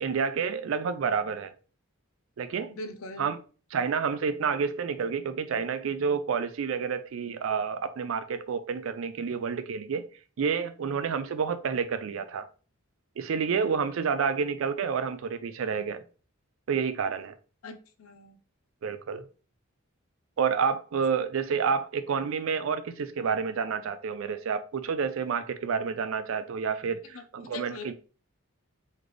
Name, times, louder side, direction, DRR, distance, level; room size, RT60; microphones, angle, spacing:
voice 1, 0.0-1.5 2.4-2.7 3.2-3.4 3.7-10.1 10.4-12.5 13.2-16.0 16.7-17.3 18.8-19.3 20.4-27.9, right 6 dB, 70° right, 0.4 m, -29 dB
voice 2, 2.7-3.3 17.6-18.4 27.4-27.9, left 2 dB, 85° left, 0.6 m, -41 dB
4.0 x 3.2 x 3.2 m
head